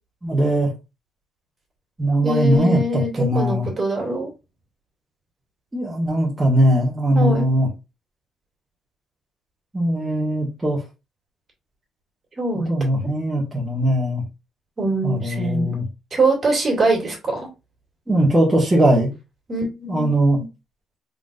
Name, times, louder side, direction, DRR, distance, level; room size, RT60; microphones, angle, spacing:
voice 1, 0.2-0.7 2.0-3.7 5.7-7.7 9.7-10.8 12.7-14.2 15.0-15.8 18.1-19.1 19.9-20.4, right 1 dB, 15° right, -5 dB, 1.8 m, -20 dB
voice 2, 2.2-4.3 7.1-7.5 12.4-12.7 14.8-15.7 16.1-17.5 19.5-20.4, right 2 dB, 35° right, -1 dB, 2.6 m, -23 dB
3.9 x 3.7 x 2.6 m, 0.26 s
cardioid pair, 90°, 0 cm